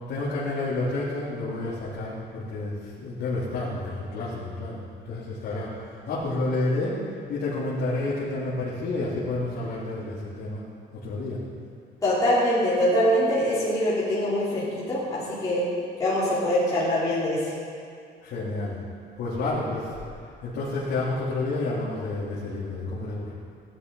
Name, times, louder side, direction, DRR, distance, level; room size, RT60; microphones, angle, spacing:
voice 1, 0.1-4.8 5.0-10.6 10.9-11.4 18.2-18.8 19.2-19.9 20.4-23.3, left 2 dB, 70° left, -8 dB, 3.1 m, -30 dB
voice 2, 12.0-15.6 16.0-17.5, equal, 20° left, -11 dB, 3.4 m, -23 dB
17.5 x 11.5 x 5.5 m, 2.4 s
cardioid pair, 175°, 18 cm